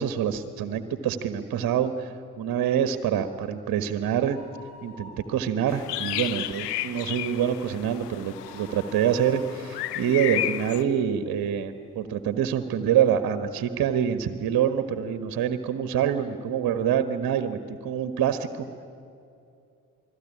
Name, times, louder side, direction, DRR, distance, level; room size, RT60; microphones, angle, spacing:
voice 1, 0.0-4.4 4.8-18.8, right 9 dB, 45° right, 10 dB, 1.5 m, -26 dB
sound 1, 4.2-5.8 6.1-6.2 6.7-11.1 11.6-11.7 12.5-12.6 12.8-12.9, equal, 55° left, 3.8 m, -48 dB
sound 2, 5.7-10.8, left 14 dB, 75° left, 1.0 m, -33 dB
29.0 x 20.5 x 9.9 m, 2.5 s
figure-of-eight pair, 45°, 48 cm